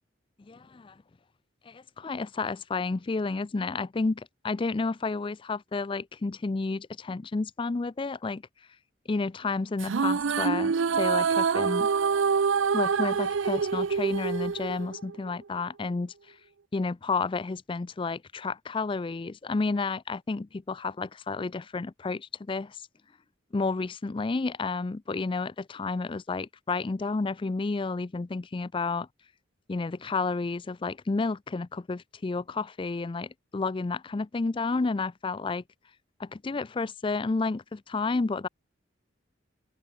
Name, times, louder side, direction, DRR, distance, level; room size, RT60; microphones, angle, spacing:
voice 1, 0.5-0.9 1.7-8.4 9.1-11.9 12.7-16.1 16.7-22.8 23.5-29.1 29.7-35.6 36.2-38.5, left 3 dB, 25° left, 0.4 m, -31 dB
sound 1, 9.8-15.3, right 5 dB, 75° right, 0.5 m, -26 dB
open air
head